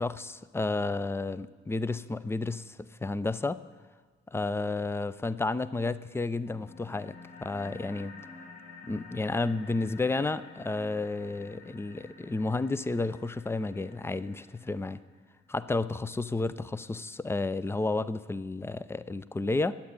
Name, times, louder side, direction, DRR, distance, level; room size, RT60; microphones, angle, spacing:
voice 1, 0.0-3.6 4.3-8.1 8.9-15.0 15.5-19.7, left 3 dB, 5° left, 16 dB, 0.4 m, -31 dB
sound 1, 6.4-15.4, left 3 dB, 40° left, 4.3 m, -50 dB
20.0 x 8.6 x 3.8 m, 1.4 s
figure-of-eight pair, 40°, 36 cm